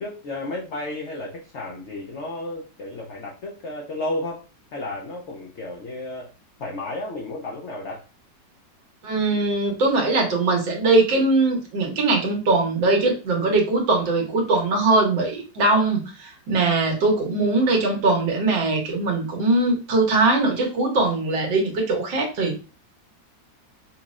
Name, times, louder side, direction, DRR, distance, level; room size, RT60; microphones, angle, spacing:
voice 1, 0.0-4.4 4.7-6.3 6.6-8.0, left 2 dB, 85° left, -1 dB, 0.6 m, -32 dB
voice 2, 9.0-22.6, right 2 dB, 85° right, 2 dB, 1.7 m, -21 dB
5.4 x 2.1 x 2.4 m, 0.33 s
omnidirectional pair, 2.0 m